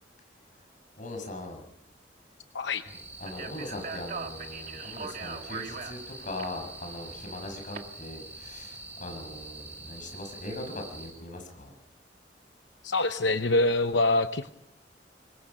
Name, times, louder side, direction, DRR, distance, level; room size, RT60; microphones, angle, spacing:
voice 1, 1.0-1.6 2.9-11.7, left 1 dB, 45° left, 4 dB, 6.4 m, -40 dB
sound 1, 2.9-11.1, right 2 dB, 10° right, 7.1 m, -45 dB
Speech, 3.2-7.8, right 5 dB, 50° right, 1.9 m, -41 dB
voice 2, 12.8-14.5, left 2 dB, 85° left, 9 dB, 0.9 m, -25 dB
26.5 x 24.0 x 5.6 m, 0.79 s
head